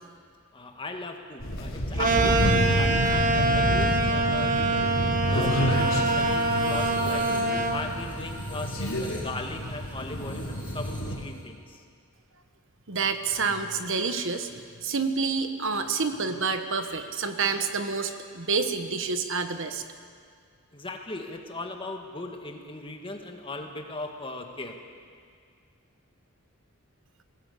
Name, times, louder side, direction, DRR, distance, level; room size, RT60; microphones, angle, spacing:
voice 1, 0.5-4.9 5.3-7.3 7.7-11.8 20.7-24.8, left 2 dB, 25° left, 3 dB, 1.8 m, -38 dB
sound 1, 1.4-11.2, equal, 60° left, 3.6 m, -29 dB
sound 2, 2.0-7.8, right 2 dB, 40° right, 1.7 m, -25 dB
sound 3, 5.7-11.4, equal, 10° right, 5.3 m, -40 dB
voice 2, 12.9-19.8, right 4 dB, 60° right, 8 dB, 1.4 m, -28 dB
21.0 x 17.0 x 8.5 m, 2.1 s
head